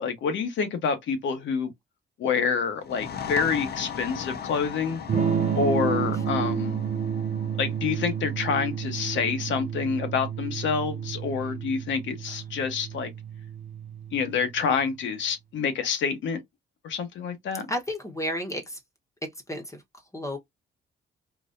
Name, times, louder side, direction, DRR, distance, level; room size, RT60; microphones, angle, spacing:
voice 1, 0.0-1.7 2.2-5.0 5.5-6.8 7.6-13.1 14.1-16.4 16.8-17.7, left 6 dB, 70° left, 1.1 m, -27 dB
sound 1, 2.8-10.2, left 7 dB, 55° left, 0.6 m, -39 dB
Electric guitar / Strum, 5.1-14.8, right 7 dB, 40° right, 0.5 m, -30 dB
voice 2, 17.7-18.8 19.5-19.8 20.1-20.4, left 1 dB, 15° left, 1.0 m, -31 dB
3.9 x 2.5 x 2.5 m
cardioid pair, 90°, 20 cm